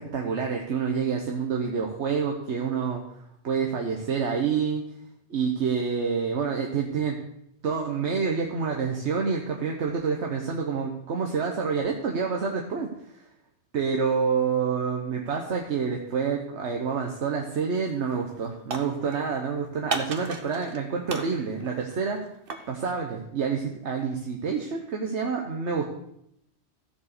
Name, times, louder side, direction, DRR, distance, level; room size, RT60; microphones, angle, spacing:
voice 1, 0.0-4.8 5.3-7.2 7.6-12.9 13.1-13.3 13.7-22.2 22.7-25.8, right 5 dB, 85° right, 1 dB, 1.4 m, -28 dB
sound 1, 17.5-17.8 18.1-19.4 19.9-20.8 21.1-22.7, right 4 dB, 55° right, 1.1 m, -35 dB
14.5 x 4.9 x 6.6 m, 0.75 s
omnidirectional pair, 1.1 m